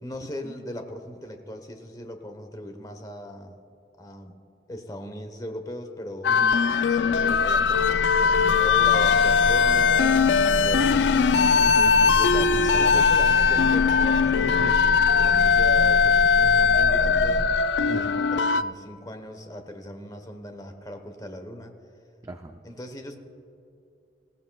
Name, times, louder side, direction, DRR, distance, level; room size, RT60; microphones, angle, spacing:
voice 1, 0.0-3.6 4.0-4.3 4.7-6.5 7.1-12.0 12.8-17.4 17.9-21.7 22.6-23.2, left 1 dB, 20° left, 6 dB, 1.0 m, -38 dB
sound 1, 6.2-18.6, left 5 dB, 75° left, 0.4 m, -20 dB
sound 2, 6.7-17.5, equal, 55° right, 3.2 m, -32 dB
voice 2, 11.6-13.0 14.4-14.7 17.9-18.2 22.2-22.6, right 1 dB, 20° right, 6 dB, 0.4 m, -36 dB
20.0 x 16.0 x 2.3 m, 2.5 s
head